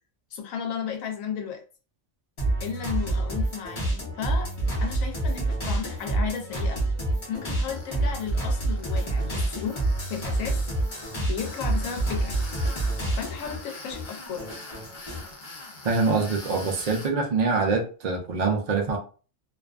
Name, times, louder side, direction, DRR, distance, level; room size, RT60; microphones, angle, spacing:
voice 1, 0.3-1.6 2.6-4.5 4.8-6.8 7.3-9.8 10.1-10.6 11.2-12.4 13.1-14.5, left 7 dB, 85° left, 1.0 m, -34 dB
sound 1, 2.4-13.6 13.9-15.3, right 2 dB, 25° left, 0.8 m, -28 dB
Tools, 7.6-17.1, left 2 dB, 55° left, 0.6 m, -44 dB
voice 2, 15.8-19.0, right 4 dB, 60° right, 0.4 m, -24 dB
2.6 x 2.3 x 2.4 m
omnidirectional pair, 1.4 m